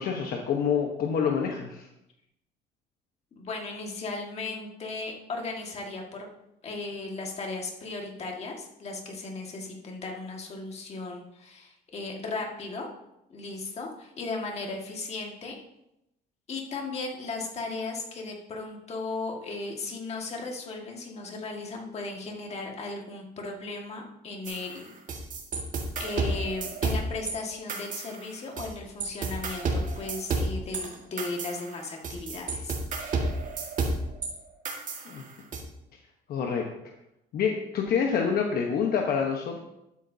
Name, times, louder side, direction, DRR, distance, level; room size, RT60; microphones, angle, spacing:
voice 1, 0.0-1.9 35.0-35.2 36.3-36.7 37.3-39.6, left 6 dB, 60° left, 2 dB, 1.1 m, -27 dB
voice 2, 3.4-6.3 6.6-12.9 13.3-15.6 16.5-24.9 26.0-32.8, left 3 dB, 35° left, 1 dB, 1.8 m, -36 dB
sound 1, 24.4-27.3 27.7-28.7 29.0-34.3 34.6-35.6, right 3 dB, 50° right, 1.8 m, -31 dB
12.0 x 8.2 x 2.7 m, 0.86 s
cardioid pair, 130°, 18 cm